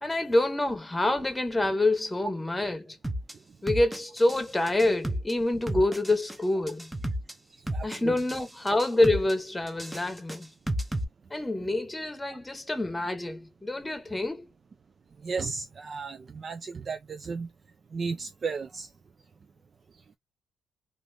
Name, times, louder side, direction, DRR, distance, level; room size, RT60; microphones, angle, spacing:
voice 1, 0.0-3.0 3.6-6.9 7.8-10.5 11.3-14.5, left 2 dB, 15° left, 0.9 m, -27 dB
sound 1, 3.0-3.3 3.7-4.4 4.7-5.3 5.7-6.4 6.7-7.3 7.7-8.4 8.7-9.3 9.7-11.0, right 1 dB, 5° right, 0.6 m, -32 dB
voice 2, 7.7-8.2 15.2-17.5 17.9-18.9, right 4 dB, 40° right, 0.3 m, -34 dB
2.6 x 2.4 x 3.3 m
cardioid pair, 90°, 0 cm